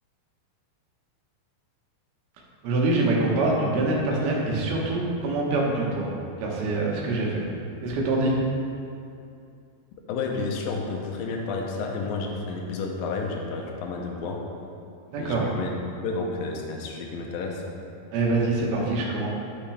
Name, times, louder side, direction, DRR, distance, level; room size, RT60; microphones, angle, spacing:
voice 1, 2.6-6.1 6.4-7.5 7.8-8.4 15.1-15.4 18.1-19.3, right 2 dB, 75° right, -3 dB, 3.0 m, -25 dB
voice 2, 10.1-14.4 15.2-15.8 16.0-17.6, left 4 dB, 75° left, 1 dB, 2.4 m, -31 dB
11.0 x 5.9 x 3.4 m, 2.5 s
omnidirectional pair, 4.5 m